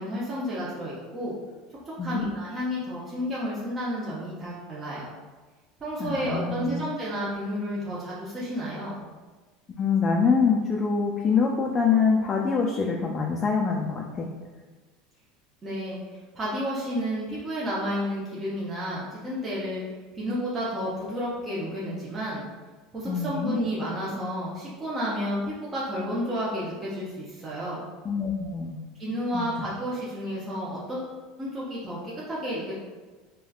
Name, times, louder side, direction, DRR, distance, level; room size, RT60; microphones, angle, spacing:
voice 1, 0.0-1.4 2.0-5.1 5.8-9.0 15.6-19.8 20.1-22.4 22.9-27.9 29.0-31.1 31.4-32.0 32.3-32.7, equal, 30° right, -7 dB, 0.7 m, -31 dB
voice 2, 6.0-6.8 9.8-14.3 23.0-23.5 28.0-28.8 29.3-29.5, left 5 dB, 30° left, 0 dB, 0.3 m, -25 dB
3.2 x 2.2 x 2.3 m, 1.3 s
hypercardioid pair, 90°, 0 cm